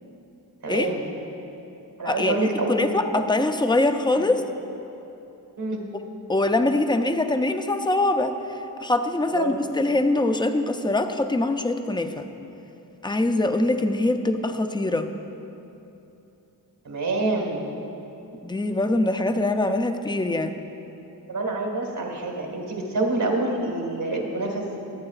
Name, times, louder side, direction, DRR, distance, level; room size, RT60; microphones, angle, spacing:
voice 1, 0.6-1.0 2.0-3.2 5.6-5.8 9.3-9.6 16.8-17.7 21.3-24.8, right 2 dB, 80° right, 0 dB, 1.7 m, -27 dB
voice 2, 2.1-4.4 6.3-12.3 13.0-15.1 18.4-20.6, left 2 dB, 10° left, 7 dB, 0.5 m, -23 dB
23.5 x 8.6 x 2.4 m, 3.0 s
wide cardioid pair, 105°, 39 cm